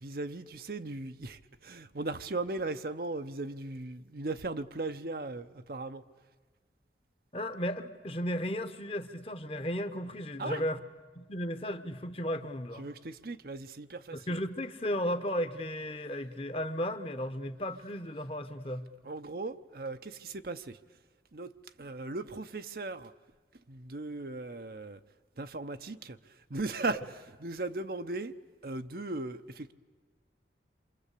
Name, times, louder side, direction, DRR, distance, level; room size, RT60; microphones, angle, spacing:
voice 1, 0.0-6.0 10.4-10.6 12.8-14.4 19.0-20.8 21.3-21.5 21.8-23.1 23.7-25.0 25.4-28.3 28.6-29.7, right 2 dB, 55° right, 0.8 m, -38 dB
voice 2, 7.3-10.8 11.1-12.9 14.1-18.9, equal, 30° left, 1.1 m, -34 dB
28.0 x 25.0 x 8.4 m
head